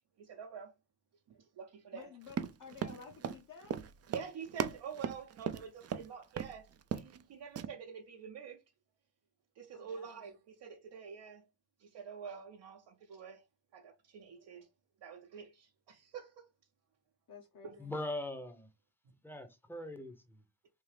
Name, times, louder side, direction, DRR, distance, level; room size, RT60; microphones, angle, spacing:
voice 1, 0.2-0.7 1.3-2.1 4.1-6.7 6.9-8.6 9.6-11.4 11.8-13.4 13.7-14.7 15.0-16.4 17.6-17.8, right 6 dB, 70° right, 0.8 m, -47 dB
voice 2, 1.9-3.8 9.7-10.3 17.3-17.9, left 6 dB, 45° left, 1.0 m, -53 dB
Run, 2.3-6.1 6.4-6.5 6.8-7.2 7.6-7.7, right 8 dB, 35° right, 0.4 m, -37 dB
voice 3, 17.8-18.7 19.2-20.4, left 1 dB, 5° left, 0.8 m, -41 dB
3.6 x 2.8 x 3.2 m
cardioid pair, 70°, 44 cm